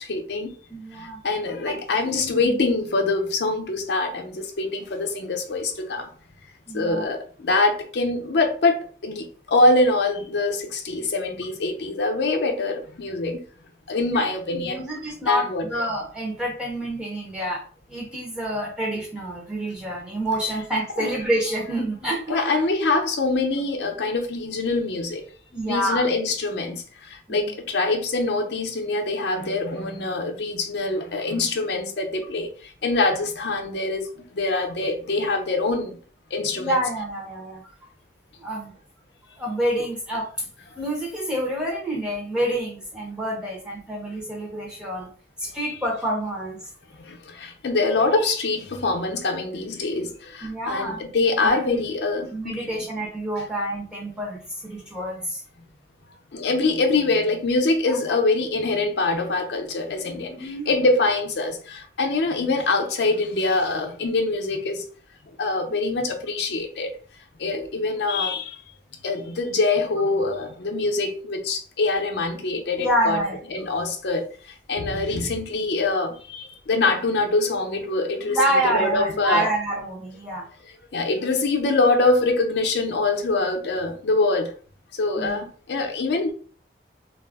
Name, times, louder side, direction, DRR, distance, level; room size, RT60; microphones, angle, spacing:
voice 1, 0.0-0.6 0.9-6.1 6.7-13.4 13.9-14.8 15.2-15.7 21.0-21.1 22.3-25.2 25.6-36.0 36.3-36.8 47.0-52.7 56.3-64.9 65.4-66.9 67.4-68.6 69.0-73.2 73.5-78.4 78.6-79.5 80.9-84.5 85.0-86.3, left 3 dB, 70° left, 0.5 m, -24 dB
voice 2, 0.7-1.2 1.7-1.8 2.0-2.6 6.7-7.1 14.1-17.6 17.9-22.7 25.5-26.1 27.3-27.6 36.6-37.6 38.4-38.7 39.4-40.4 40.8-45.1 45.4-46.7 50.4-51.1 51.4-51.8 52.3-55.4 57.9-58.2 60.4-60.9 72.8-73.4 78.3-80.5 85.2-85.4, right 1 dB, 5° right, 0.6 m, -28 dB
2.3 x 2.0 x 3.4 m
head